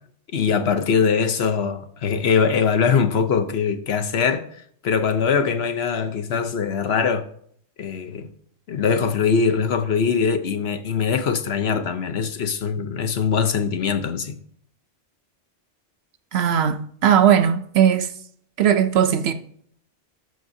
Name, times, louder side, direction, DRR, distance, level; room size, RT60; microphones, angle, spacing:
voice 1, 0.3-7.2 7.8-8.3 8.7-14.4, left 6 dB, 60° left, 1.0 m, -22 dB
voice 2, 16.3-18.1 18.6-19.3, right 9 dB, 65° right, 0.8 m, -18 dB
12.5 x 6.0 x 2.7 m
omnidirectional pair, 1.2 m